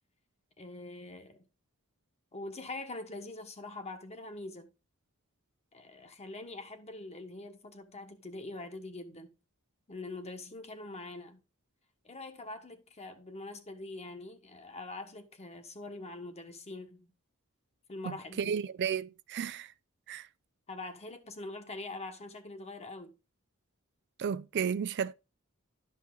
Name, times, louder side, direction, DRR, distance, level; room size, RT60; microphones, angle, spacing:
voice 1, 0.6-1.4 2.3-4.7 5.7-9.3 9.9-11.4 12.0-17.1 17.9-18.6 20.7-23.1, left 2 dB, 30° left, 1.3 m, -44 dB
voice 2, 18.0-19.7 20.1-20.3 24.2-25.1, right 7 dB, 50° right, 0.4 m, -33 dB
11.5 x 5.6 x 4.0 m
head